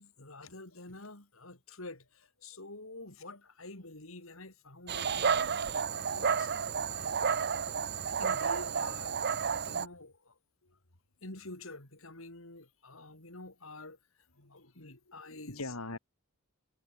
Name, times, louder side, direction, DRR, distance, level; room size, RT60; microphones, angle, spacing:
voice 1, 0.0-7.3 8.0-9.2 9.6-10.4 11.2-14.0 14.5-15.6, left 2 dB, 65° left, 4.5 m, -48 dB
Dog, 4.9-9.9, right 6 dB, 50° right, 0.8 m, -31 dB
voice 2, 14.4-15.0 15.3-16.0, left 2 dB, 80° left, 3.1 m, -43 dB
head